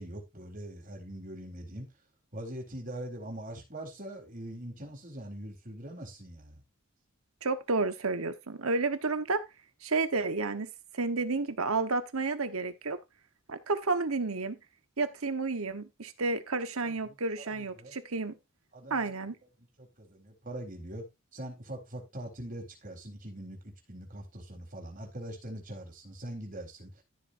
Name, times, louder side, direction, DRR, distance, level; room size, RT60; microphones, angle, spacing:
voice 1, 0.0-1.9 2.3-6.6 16.8-17.1 17.4-17.9 18.7-19.1 19.8-21.0 21.3-27.0, right 1 dB, 40° right, 4.2 m, -42 dB
voice 2, 7.4-9.4 9.8-13.0 13.5-14.6 15.0-18.4 18.9-19.3, right 3 dB, 90° right, 1.3 m, -31 dB
14.0 x 7.4 x 2.7 m
head